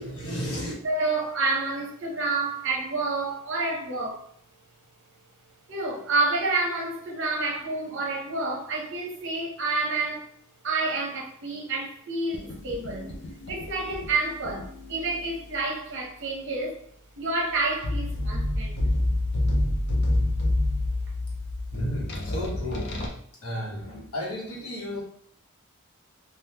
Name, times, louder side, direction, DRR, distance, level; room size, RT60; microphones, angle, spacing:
voice 1, 0.0-0.7 21.7-22.9 23.4-25.0, equal, 80° left, 1.1 m, -33 dB
voice 2, 0.8-4.2 5.7-10.3 10.6-13.1 13.5-16.8 17.2-18.8, right 3 dB, 60° right, 0.8 m, -29 dB
sound 1, 12.3-15.2 17.8-23.1, left 1 dB, 50° left, 0.6 m, -28 dB
3.3 x 2.3 x 2.8 m
head